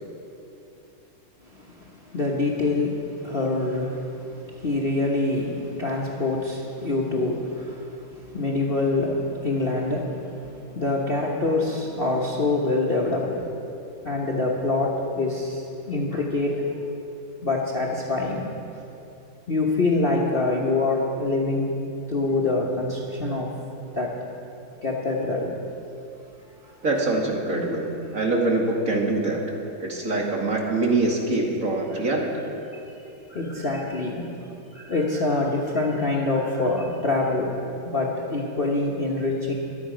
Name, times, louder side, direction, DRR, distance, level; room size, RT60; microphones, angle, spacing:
voice 1, 1.5-13.5 14.0-16.7 17.4-18.5 19.5-21.7 22.1-23.5 23.9-24.2 24.8-25.6 26.6-26.7 32.1-32.2 33.3-34.3 34.7-39.5, left 2 dB, 35° left, -2 dB, 1.0 m, -25 dB
voice 2, 26.8-29.4 29.8-32.3, right 2 dB, 40° right, -1 dB, 1.9 m, -24 dB
22.5 x 8.6 x 5.1 m, 2.9 s
omnidirectional pair, 2.2 m